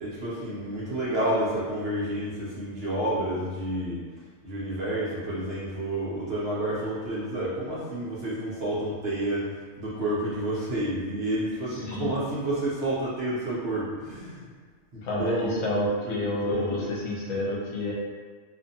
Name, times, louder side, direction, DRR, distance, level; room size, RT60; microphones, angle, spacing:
voice 1, 0.0-4.0 4.4-9.5 9.8-14.5 14.9-15.7 16.0-16.2 16.5-16.7, right 1 dB, 55° right, -8 dB, 0.8 m, -30 dB
voice 2, 15.0-17.9, left 1 dB, 75° left, -5 dB, 1.1 m, -29 dB
2.5 x 2.5 x 2.7 m, 1.5 s
omnidirectional pair, 1.4 m